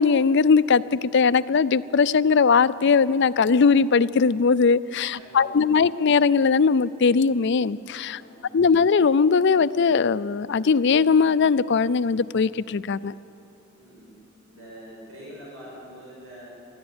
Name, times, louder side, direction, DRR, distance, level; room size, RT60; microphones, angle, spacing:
voice 1, 0.0-8.2 8.5-13.1, left 5 dB, 60° left, 14 dB, 0.5 m, -20 dB
voice 2, 5.1-6.0 8.1-8.8 13.7-14.2 14.5-16.5, equal, 80° right, -5 dB, 5.8 m, -45 dB
20.0 x 13.5 x 9.7 m, 3.0 s
head